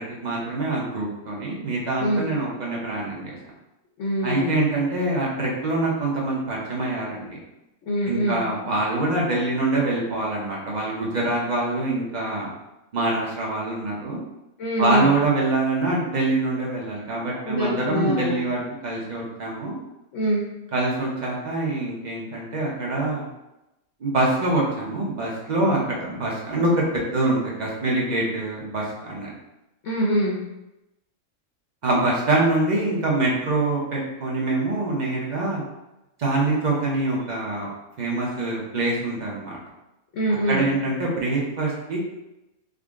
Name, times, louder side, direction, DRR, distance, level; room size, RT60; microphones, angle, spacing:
voice 1, 0.0-3.4 4.2-7.4 8.0-12.5 12.9-14.2 14.8-19.8 20.7-23.3 24.0-29.3 31.8-35.6 36.2-37.7 38.0-39.6 40.5-42.0, right 2 dB, 45° right, -4 dB, 0.6 m, -25 dB
voice 2, 4.0-4.8 7.9-8.4 14.6-15.2 17.4-18.5 20.1-20.4 25.6-25.8 29.8-30.4 40.1-40.7, equal, 65° left, -5 dB, 0.9 m, -24 dB
3.7 x 2.0 x 3.5 m, 0.93 s
omnidirectional pair, 1.6 m